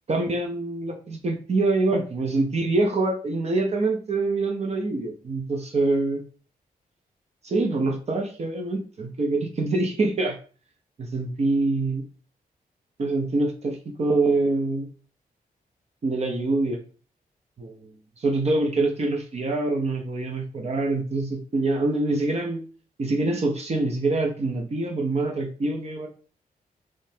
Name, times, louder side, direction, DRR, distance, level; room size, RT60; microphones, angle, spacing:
voice 1, 0.1-6.2 7.4-10.4 11.0-12.0 13.0-14.9 16.0-16.8 17.6-17.8 18.2-22.6 23.0-26.1, right 2 dB, 45° right, 3 dB, 0.7 m, -25 dB
3.6 x 3.2 x 2.8 m, 0.38 s
wide cardioid pair, 125°, 16 cm